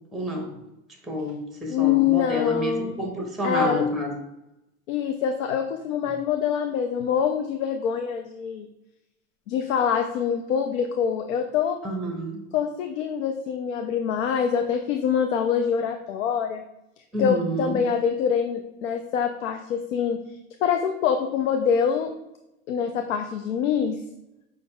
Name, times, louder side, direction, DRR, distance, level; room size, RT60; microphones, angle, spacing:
voice 1, 0.1-0.5 1.1-4.1 11.8-12.4 17.1-17.8, equal, ahead, 3 dB, 0.7 m, -29 dB
voice 2, 1.7-3.0 3.4-3.9 4.9-8.7 9.5-11.8 12.5-16.6 17.2-20.2 20.6-22.1 22.7-24.0, left 7 dB, 70° left, 5 dB, 0.6 m, -25 dB
5.3 x 3.9 x 2.2 m, 0.89 s
hypercardioid pair, 105°, 41 cm